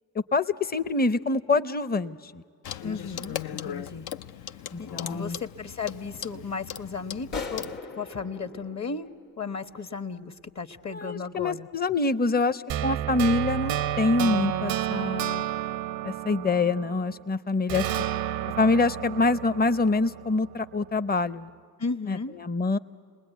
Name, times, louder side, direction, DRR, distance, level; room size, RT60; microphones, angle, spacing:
voice 1, 0.3-2.4 4.7-5.4 10.9-15.4 16.0-17.9 18.6-21.5 22.1-22.8, left 3 dB, 25° left, 13 dB, 0.8 m, -25 dB
Clock, 2.6-7.8, left 10 dB, 65° left, 0.7 m, -38 dB
voice 2, 2.8-4.1 4.8-9.1 9.4-11.7 21.8-22.3, left 5 dB, 40° left, 9 dB, 1.3 m, -35 dB
sound 1, 7.3-9.9, left 4 dB, 85° left, 1.5 m, -39 dB
Open drop of bluegrass tuning for guitar (synthesized), 12.7-17.2 17.7-20.8, right 11 dB, 80° right, 0.8 m, -31 dB
29.5 x 20.5 x 9.3 m, 2.2 s
supercardioid pair, 55°, 41 cm